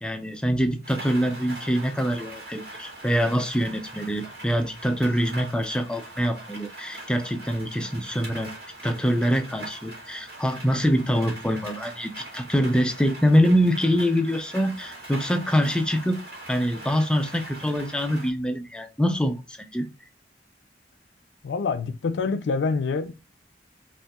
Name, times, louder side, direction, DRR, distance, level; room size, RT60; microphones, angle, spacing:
voice 1, 0.0-8.5 8.8-16.2 16.5-19.9, equal, 5° left, 0.3 m, -24 dB
Rain, 0.8-18.3, right 2 dB, 60° right, 1.7 m, -42 dB
voice 2, 21.4-23.1, left 4 dB, 85° left, 0.4 m, -26 dB
5.4 x 2.8 x 2.2 m
head